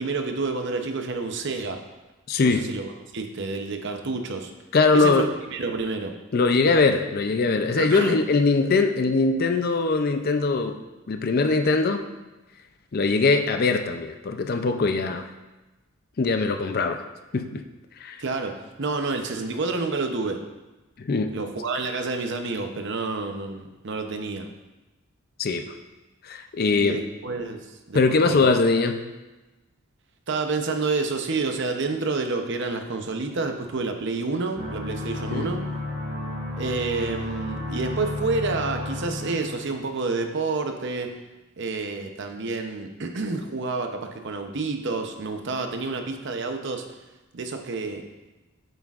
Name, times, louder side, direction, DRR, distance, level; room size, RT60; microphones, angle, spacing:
voice 1, 0.0-1.8 2.4-4.5 4.9-6.1 7.8-8.2 18.2-20.4 21.3-24.5 26.8-28.0 28.2-28.5 30.3-35.6 36.6-41.2 41.6-46.9 47.3-48.0, right 3 dB, 55° right, 5 dB, 0.7 m, -29 dB
voice 2, 2.3-2.7 4.7-5.3 6.3-10.8 11.1-12.1 12.9-15.3 16.2-17.0 17.3-17.6 18.0-18.2 21.0-21.4 25.4-25.6 26.2-27.0 27.9-29.0 35.3-35.5, left 3 dB, 45° left, 7 dB, 0.5 m, -21 dB
sound 1, 34.6-39.9, left 2 dB, 80° right, 2.4 m, -32 dB
8.1 x 7.6 x 2.5 m, 1.1 s
head